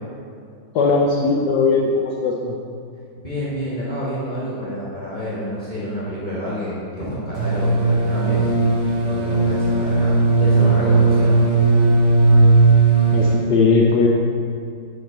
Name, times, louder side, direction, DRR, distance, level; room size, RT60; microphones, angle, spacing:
voice 1, 0.7-2.5 13.1-14.1, left 4 dB, 70° left, -2 dB, 1.2 m, -18 dB
voice 2, 3.2-8.5 9.0-11.4, equal, 25° left, -9 dB, 1.5 m, -28 dB
sound 1, 7.4-13.3, right 3 dB, 50° right, 1.3 m, -16 dB
7.9 x 3.8 x 6.5 m, 2.4 s
omnidirectional pair, 2.0 m